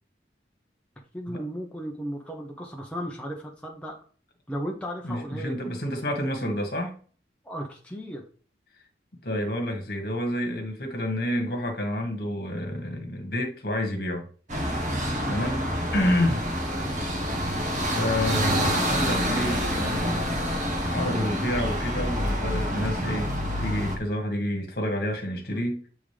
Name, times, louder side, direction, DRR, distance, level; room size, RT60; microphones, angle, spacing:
voice 1, 1.1-4.0 4.5-5.7 7.4-8.2 15.3-15.7 16.6-16.9 25.5-25.6, equal, 5° left, 0.9 m, -35 dB
voice 2, 5.0-7.0 9.2-14.3 15.3-15.6 15.9-16.4 17.3-23.3 23.6-25.9, left 1 dB, 60° left, 1.6 m, -29 dB
sound 1, 14.5-24.0, equal, 45° right, 1.4 m, -27 dB
8.2 x 3.6 x 3.4 m
head